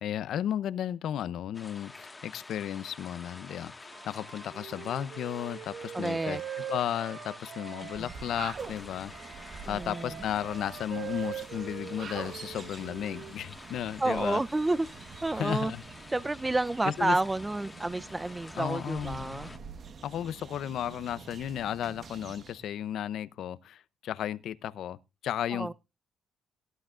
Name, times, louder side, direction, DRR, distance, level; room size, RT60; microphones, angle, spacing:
voice 1, 0.0-6.4 6.7-9.1 9.7-14.4 15.3-15.8 16.8-17.2 18.6-19.6 20.0-25.0 25.2-25.7, left 10 dB, 75° left, 0.7 m, -34 dB
sound 1, 1.5-19.6, left 3 dB, 20° left, 1.7 m, -49 dB
Wind instrument woodwind instrument, 3.9-8.5 9.1-13.9, right 10 dB, 70° right, 2.6 m, -43 dB
voice 2, 5.9-6.4 8.0-8.1 9.7-10.2 14.0-14.9 15.2-15.7 16.1-19.5 25.5-25.7, right 2 dB, 15° right, 0.6 m, -30 dB
sound 2, 7.8-22.7, right 5 dB, 50° right, 1.3 m, -46 dB
19.5 x 11.5 x 2.5 m
cardioid pair, 90°, 0 cm